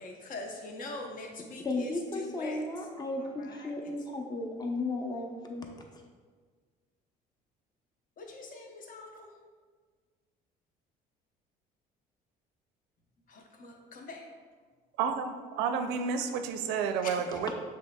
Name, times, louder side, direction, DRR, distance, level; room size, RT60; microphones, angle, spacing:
voice 1, 0.0-2.6 3.2-3.9 8.2-9.3 13.3-14.3 17.0-17.3, left 2 dB, 55° left, 0.9 m, -43 dB
voice 2, 1.6-5.7, left 2 dB, 25° left, 0.8 m, -34 dB
voice 3, 15.0-17.5, right 6 dB, 85° right, 0.4 m, -31 dB
6.2 x 3.7 x 2.3 m
cardioid pair, 95°, 17 cm